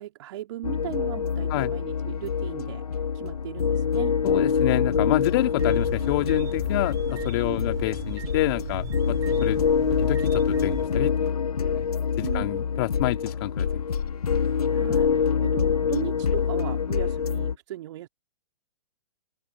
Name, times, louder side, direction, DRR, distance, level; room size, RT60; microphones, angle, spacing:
voice 1, 0.0-2.8 3.1-4.1 7.4-7.6 12.2-12.6 14.7-18.1, right 14 dB, 50° right, 2.6 m, -37 dB
sound 1, 0.6-17.6, left 6 dB, 75° left, 1.4 m, -25 dB
voice 2, 4.2-9.6 10.0-11.3 11.7-11.9 12.2-13.9 14.4-14.5, left 20 dB, 40° left, 2.4 m, -28 dB
sound 2, 5.6-10.9, right 9 dB, 15° right, 3.3 m, -39 dB
open air
figure-of-eight pair, 125°, 19 cm